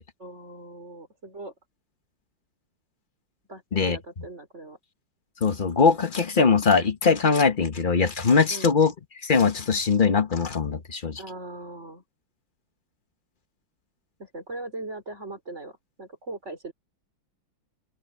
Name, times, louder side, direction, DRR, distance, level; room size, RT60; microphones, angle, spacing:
voice 1, 0.2-1.5 3.5-4.8 8.5-8.7 11.2-12.0 14.2-16.7, right 2 dB, 35° right, 4.9 m, -39 dB
voice 2, 5.4-8.9 9.2-11.2, left 5 dB, 35° left, 0.8 m, -21 dB
open air
omnidirectional pair, 2.2 m